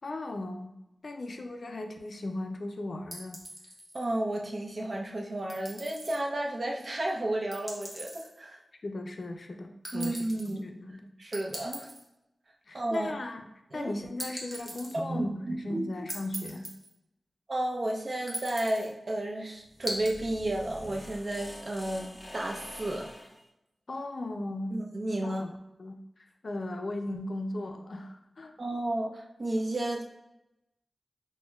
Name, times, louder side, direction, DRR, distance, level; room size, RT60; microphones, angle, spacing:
voice 1, 0.0-0.7 1.0-3.4 8.8-11.1 12.7-13.4 13.7-16.7 23.9-24.8 25.2-25.5 25.8-28.5, left 1 dB, 65° left, 5 dB, 0.4 m, -37 dB
sound 1, 3.1-4.1 5.5-6.2 7.5-8.3 9.8-10.5 11.3-12.1 14.2-14.9 16.1-16.9 18.3-18.9 19.8-20.1, right 1 dB, 15° right, 0.9 m, -40 dB
voice 2, 3.9-8.6 9.9-10.7 11.2-11.9 12.7-13.1 13.7-13.9 14.9-15.9 17.5-22.1 22.3-23.1 24.7-25.4 28.6-30.0, right 1 dB, 50° right, 0 dB, 0.6 m, -32 dB
sound 2, 19.6-23.4, left 1 dB, 25° left, 0.6 m, -46 dB
6.0 x 2.2 x 2.3 m, 0.91 s
wide cardioid pair, 80°, 0 cm